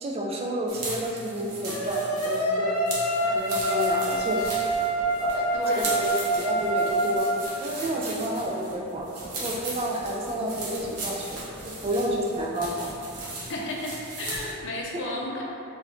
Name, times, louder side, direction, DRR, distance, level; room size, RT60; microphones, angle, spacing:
voice 1, 0.0-2.8 3.2-4.7 5.2-7.3 7.6-9.1 9.4-11.4 11.7-12.9, right 1 dB, 25° right, -2 dB, 0.3 m, -30 dB
sound 1, 0.7-14.6, right 2 dB, 85° right, 0.8 m, -38 dB
sound 2, 1.7-7.5, right 1 dB, 90° left, 0.7 m, -26 dB
Hammer, 3.6-13.2 14.6-14.7, equal, 5° left, 1.3 m, -45 dB
voice 2, 5.5-5.9 13.5-13.9 14.2-15.4, left 2 dB, 55° left, -3 dB, 0.6 m, -33 dB
3.7 x 2.4 x 3.4 m, 2.7 s
head